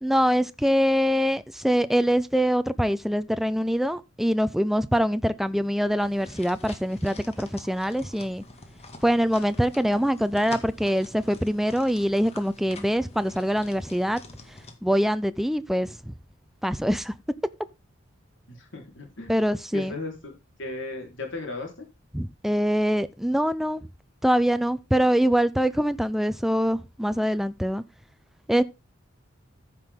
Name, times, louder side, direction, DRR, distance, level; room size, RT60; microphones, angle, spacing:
voice 1, 0.0-8.4 9.0-14.2 14.8-16.1 16.6-17.1 19.3-19.9 22.1-23.8 24.2-27.8 28.5-28.6, equal, ahead, 0.5 m, -24 dB
sound 1, 6.0-14.8, left 3 dB, 35° left, 1.9 m, -46 dB
voice 2, 18.5-19.4 19.7-20.3 20.6-21.9, left 3 dB, 65° left, 4.1 m, -36 dB
14.5 x 6.0 x 3.7 m
head